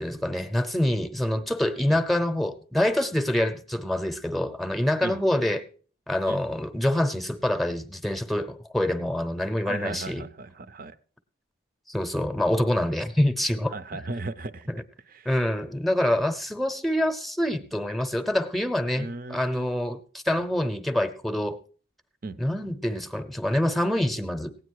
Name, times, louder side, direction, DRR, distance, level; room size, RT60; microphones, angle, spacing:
voice 1, 0.0-5.6 6.1-10.2 11.9-13.7 14.7-14.8 15.2-21.6 22.4-24.5, left 1 dB, ahead, 10 dB, 0.7 m, -26 dB
voice 2, 9.7-11.0 13.7-14.7 15.1-15.3 18.9-19.8 22.2-22.4, right 3 dB, 45° right, 15 dB, 0.6 m, -36 dB
16.5 x 9.2 x 4.7 m, 0.42 s
head